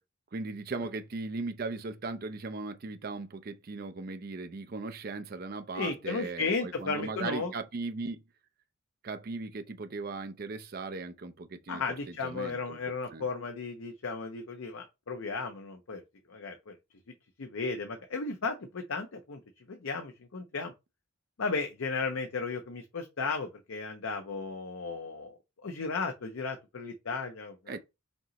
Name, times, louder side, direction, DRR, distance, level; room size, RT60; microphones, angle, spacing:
voice 1, 0.3-8.2 9.0-12.8 13.1-13.3 27.7-27.8, right 3 dB, 45° right, 0.5 m, -38 dB
voice 2, 5.7-7.5 11.7-16.0 16.3-16.7 17.4-20.7 21.4-27.8, left 4 dB, 75° left, 0.6 m, -35 dB
5.2 x 3.0 x 2.9 m
head